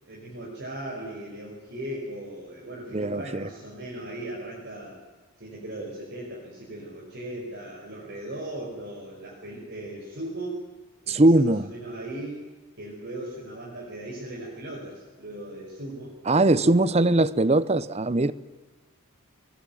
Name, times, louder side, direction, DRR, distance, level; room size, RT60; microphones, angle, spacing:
voice 1, 0.0-5.0 5.4-10.6 11.0-12.4 12.8-16.1 16.6-17.1, right 1 dB, 55° right, 5.5 m, -38 dB
voice 2, 2.9-3.4 11.1-11.6 16.3-18.3, right 2 dB, 30° right, 0.7 m, -20 dB
21.5 x 20.5 x 9.3 m
head